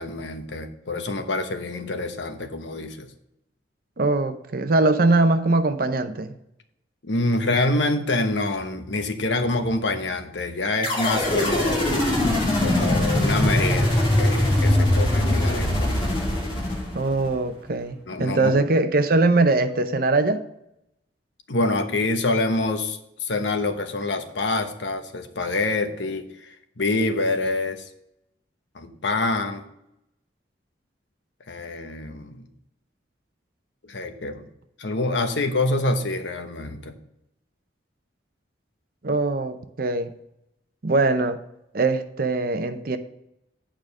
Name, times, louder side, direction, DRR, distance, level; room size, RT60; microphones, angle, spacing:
voice 1, 0.0-3.1 7.0-11.9 12.6-15.9 18.1-18.5 21.5-27.8 28.7-29.6 31.5-32.5 33.8-34.4 34.8-36.9, left 2 dB, 85° left, 1.0 m, -26 dB
voice 2, 4.0-6.3 16.9-20.4 39.0-40.1 40.8-41.4 41.7-43.0, right 2 dB, 55° right, 0.7 m, -21 dB
sound 1, 10.8-17.3, left 1 dB, 25° left, 2.5 m, -22 dB
8.7 x 5.1 x 6.2 m
head